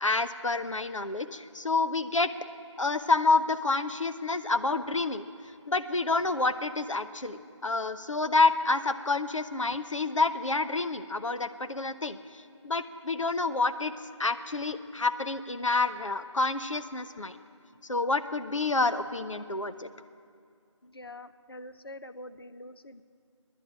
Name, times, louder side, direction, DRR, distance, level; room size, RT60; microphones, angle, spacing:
voice 1, 0.0-2.3 2.8-5.3 5.7-13.9 14.2-17.4 17.8-19.9, left 3 dB, 80° left, 10 dB, 0.8 m, -28 dB
voice 2, 20.8-23.0, left 1 dB, 50° left, 11 dB, 0.6 m, -45 dB
14.0 x 10.5 x 8.7 m, 2.3 s
figure-of-eight pair, 170°, 16 cm